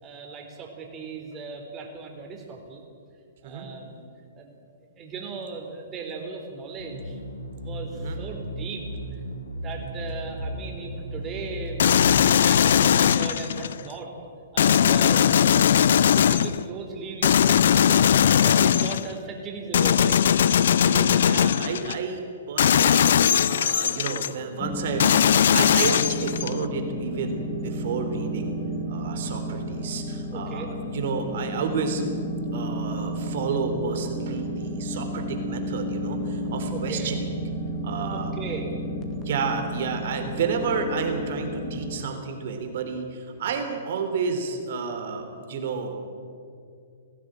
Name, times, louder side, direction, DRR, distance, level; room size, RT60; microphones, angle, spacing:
voice 1, 0.0-2.8 3.4-4.0 4.3-4.6 5.0-7.2 7.6-9.2 9.5-14.1 14.5-15.7 16.0-20.2 30.3-30.7 36.7-37.1 38.1-38.7, right 4 dB, 25° right, 2 dB, 3.9 m, -37 dB
sound 1, 6.8-12.3, equal, 85° left, 2.8 m, -35 dB
sound 2, 11.8-13.8 14.6-16.6 17.2-19.1 19.7-22.0 22.6-24.3 25.0-26.7, left 9 dB, 65° left, 0.6 m, -19 dB
voice 2, 20.8-25.2 25.5-28.6 28.9-32.0 32.5-37.3 37.8-38.3 39.3-46.0, right 5 dB, 55° right, 5 dB, 3.7 m, -31 dB
sound 3, 24.6-42.0, equal, 30° left, 2.8 m, -32 dB
19.5 x 16.0 x 9.1 m, 2.4 s
hypercardioid pair, 120°, 0 cm